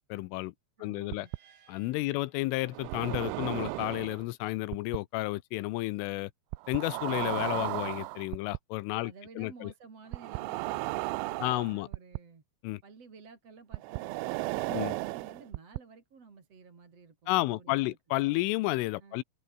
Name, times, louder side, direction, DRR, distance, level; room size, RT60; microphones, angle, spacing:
voice 1, 0.1-0.5 0.8-1.3 1.7-6.3 6.7-9.7 11.4-11.9 12.6-12.8 14.7-15.0 17.3-19.2, left 19 dB, 80° left, 3.2 m, -31 dB
voice 2, 0.8-1.3 2.1-2.2 8.9-12.4 12.8-18.3 19.0-19.2, right 5 dB, 35° right, 4.0 m, -53 dB
sound 1, 1.0-3.2, right 8 dB, 60° right, 5.3 m, -65 dB
sound 2, 1.1-1.4 2.7-4.2 4.7-5.0 6.5-8.6 10.1-12.2 13.7-15.8, right 24 dB, 85° right, 2.7 m, -34 dB
omnidirectional pair, 5.8 m